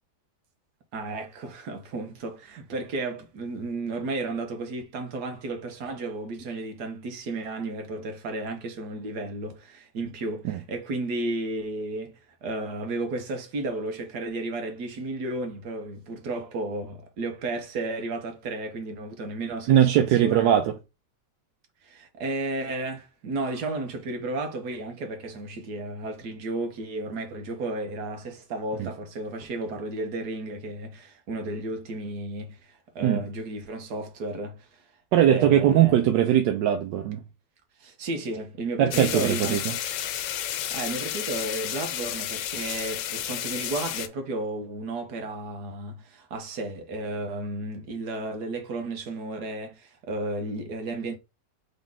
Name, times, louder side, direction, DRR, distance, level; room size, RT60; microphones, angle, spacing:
voice 1, 0.9-20.5 21.8-34.9 35.3-36.0 37.8-39.6 40.7-51.2, right 2 dB, 65° right, 1.7 m, -33 dB
voice 2, 19.7-20.7 28.8-28.9 33.0-33.2 35.1-37.2 38.8-39.7, right 10 dB, 85° right, 1.3 m, -20 dB
sound 1, 38.9-44.1, left 11 dB, 85° left, 1.3 m, -32 dB
4.0 x 3.7 x 3.6 m
omnidirectional pair, 1.9 m